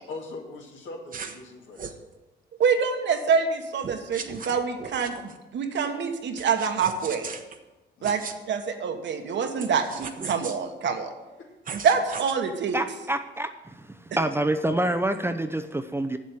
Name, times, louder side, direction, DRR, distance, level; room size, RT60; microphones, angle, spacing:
voice 1, 0.1-2.0 4.9-5.0 8.0-8.3 11.4-11.5 14.1-14.3 14.8-14.9, left 3 dB, 75° left, 0 dB, 2.3 m, -41 dB
sound 1, 1.1-1.4 1.8-2.0 3.8-5.4 6.4-7.6 8.0-8.4 9.6-10.6 11.7-12.3, right 6 dB, 45° right, 1.0 m, -37 dB
voice 2, 2.6-7.3 8.0-8.2 8.5-11.1 11.8-12.8, right 6 dB, 65° right, 5 dB, 1.4 m, -26 dB
voice 3, 12.7-13.9 14.1-16.2, right 1 dB, 10° right, 7 dB, 0.6 m, -27 dB
7.6 x 7.3 x 8.4 m, 1.1 s
cardioid pair, 90°, 20 cm